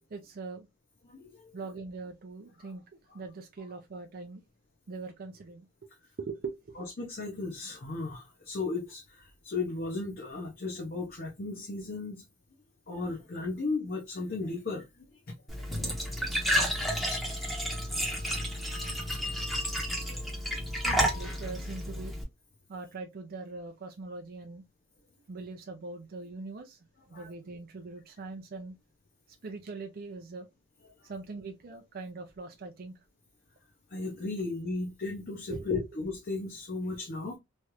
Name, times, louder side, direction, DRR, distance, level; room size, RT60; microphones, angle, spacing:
voice 1, 0.1-0.7 1.5-2.8 3.1-4.4 4.9-5.9 6.2-6.9 20.8-22.2 22.7-24.6 25.3-26.8 27.1-28.7 29.4-30.5 31.0-32.9 35.5-35.7, right 3 dB, 40° right, 0.4 m, -41 dB
voice 2, 1.0-1.4 7.0-12.2 12.9-14.8 20.1-20.2 27.1-27.3 33.9-37.4, left 3 dB, 40° left, 0.6 m, -35 dB
Glass / Trickle dribble / Fill (with liquid), 15.5-22.2, equal, ahead, 0.7 m, -31 dB
3.1 x 2.4 x 2.9 m
head